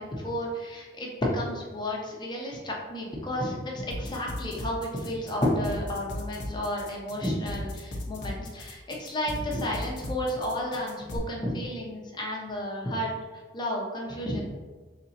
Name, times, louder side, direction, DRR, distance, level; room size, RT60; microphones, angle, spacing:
voice 1, 0.0-13.1 13.5-14.4, left 1 dB, 25° left, -2 dB, 0.7 m, -32 dB
sound 1, 3.9-11.2, left 1 dB, 75° left, 0.7 m, -36 dB
3.3 x 2.8 x 4.0 m, 1.4 s
head